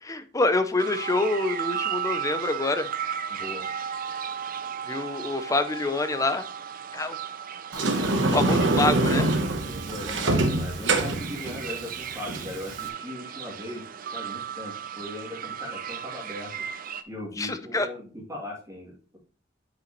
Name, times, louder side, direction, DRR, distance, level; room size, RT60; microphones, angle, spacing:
voice 1, 0.0-2.9 4.9-6.4 6.9-7.2 7.7-9.3 17.4-17.9, left 2 dB, 15° left, 10 dB, 0.5 m, -26 dB
sound 1, 0.8-17.0, right 8 dB, 45° right, 0.5 m, -35 dB
voice 2, 3.3-3.7 9.7-13.8 14.1-16.5 17.1-19.2, left 1 dB, 15° right, -4 dB, 2.7 m, -39 dB
Sliding door, 7.7-12.9, right 2 dB, 70° right, 1.0 m, -25 dB
7.5 x 5.8 x 3.1 m, 0.38 s
head